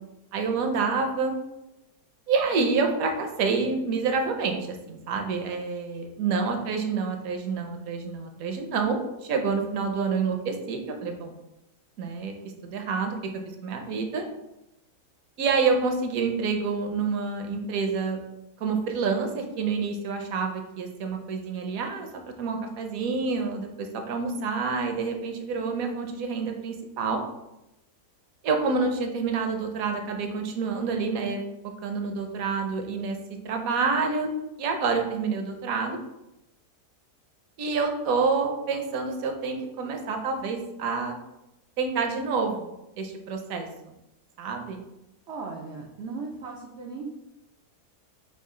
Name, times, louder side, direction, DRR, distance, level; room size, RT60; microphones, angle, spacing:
voice 1, 0.3-1.3 2.3-11.3 12.0-12.3 12.6-13.3 13.6-14.3 15.4-18.2 18.6-27.2 28.4-31.4 31.8-33.2 33.4-34.3 34.6-36.0 37.6-41.2 41.8-43.7 44.4-44.8, right 4 dB, 70° right, 4 dB, 0.9 m, -28 dB
voice 2, 45.3-47.1, right 4 dB, 85° right, 0 dB, 0.6 m, -37 dB
4.9 x 2.3 x 3.6 m, 0.93 s
omnidirectional pair, 1.8 m